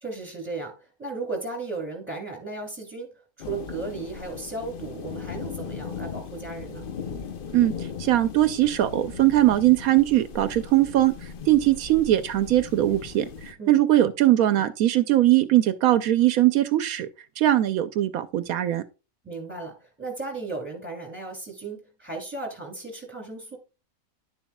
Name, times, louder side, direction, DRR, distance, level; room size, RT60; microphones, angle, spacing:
voice 1, 0.0-6.9 13.6-13.9 14.6-14.7 19.2-23.6, right 3 dB, 10° right, 2.6 m, -35 dB
sound 1, 3.4-13.5, left 6 dB, 50° left, 0.7 m, -38 dB
voice 2, 7.5-17.1 17.4-18.8, right 14 dB, 80° right, 1.0 m, -21 dB
11.0 x 7.0 x 2.2 m
omnidirectional pair, 1.5 m